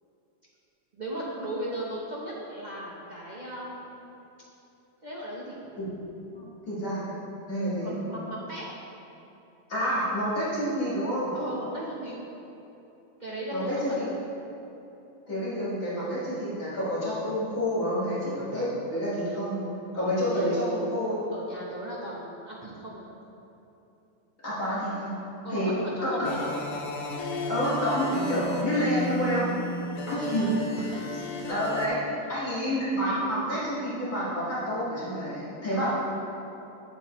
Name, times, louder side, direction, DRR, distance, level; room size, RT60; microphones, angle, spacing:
voice 1, 0.9-4.1 5.0-5.7 6.3-6.5 7.7-8.7 11.3-12.1 13.2-14.0 20.0-20.6 21.3-23.1 25.4-26.5 30.1-31.2, right 1 dB, 45° right, -6 dB, 0.6 m, -37 dB
voice 2, 6.7-7.1 7.5-7.9 9.7-11.3 13.5-14.1 15.3-21.2 24.4-25.2 25.5-25.7 26.0-26.3 27.5-29.5 30.1-30.5 31.0-31.1 31.5-32.0 32.3-35.9, equal, 45° left, -10 dB, 2.1 m, -28 dB
sound 1, 26.2-31.9, left 2 dB, 65° left, 1.1 m, -34 dB
8.0 x 7.5 x 3.1 m, 3.0 s
omnidirectional pair, 2.1 m